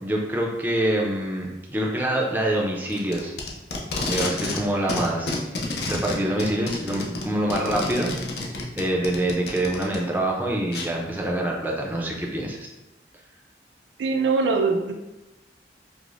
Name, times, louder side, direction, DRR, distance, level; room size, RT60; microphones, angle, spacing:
voice 1, 0.0-3.3 3.9-5.4 5.9-8.1 8.8-12.6, right 1 dB, 10° right, -2 dB, 0.4 m, -25 dB
Packing tape duct tape, 2.9-4.6 4.9-10.0 10.7-10.9, left 2 dB, 65° left, 0.5 m, -29 dB
voice 2, 14.0-14.9, right 4 dB, 90° right, 4 dB, 0.4 m, -22 dB
4.9 x 2.0 x 2.5 m, 0.99 s
head